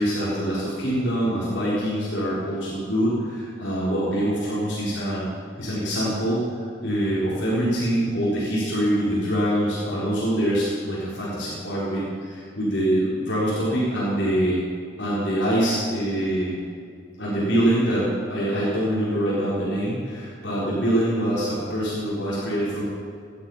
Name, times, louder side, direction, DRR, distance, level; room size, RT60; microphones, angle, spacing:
voice 1, 0.0-5.3 5.6-14.6 15.0-16.5 17.2-22.8, right 1 dB, 70° left, -8 dB, 4.7 m, -24 dB
18.5 x 12.0 x 5.8 m, 2.3 s
head